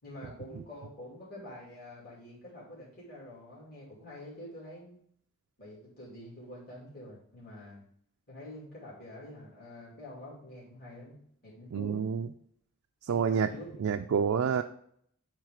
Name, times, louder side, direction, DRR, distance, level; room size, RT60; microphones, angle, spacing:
voice 1, 0.0-5.0 5.6-7.8 8.3-11.2 11.4-12.1 13.1-13.7, left 1 dB, 50° left, -8 dB, 2.5 m, -47 dB
voice 2, 11.7-12.3 13.1-13.5 13.8-14.6, right 6 dB, 70° right, 6 dB, 0.4 m, -28 dB
8.8 x 3.3 x 5.0 m, 0.67 s
head